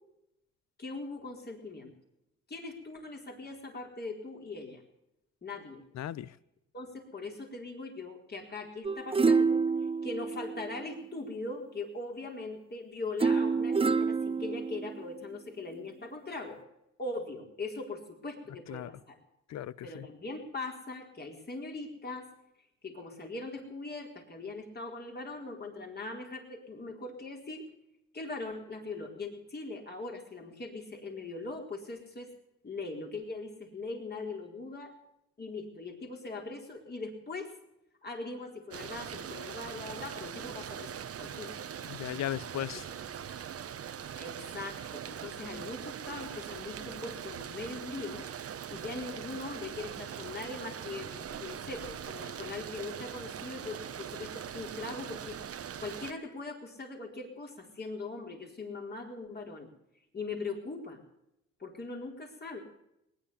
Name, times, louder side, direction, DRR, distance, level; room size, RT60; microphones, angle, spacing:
voice 1, 0.8-1.9 2.5-4.8 5.4-5.8 6.7-16.6 17.0-19.2 19.8-22.3 22.8-27.7 28.1-32.3 32.6-34.9 35.4-37.5 38.0-41.5 44.2-48.3 48.7-55.4 55.8-59.7 60.1-61.0 61.6-62.6, left 3 dB, 35° left, 4.3 m, -41 dB
voice 2, 6.0-6.3 18.7-18.9 19.5-20.0 41.9-42.8, left 11 dB, 65° left, 0.7 m, -36 dB
sound 1, 8.8-11.2 13.2-15.2 15.7-15.8, right 4 dB, 20° right, 0.8 m, -28 dB
sound 2, 38.7-56.1, right 8 dB, 50° right, 1.1 m, -41 dB
20.0 x 10.5 x 7.1 m
cardioid pair, 90°, 30 cm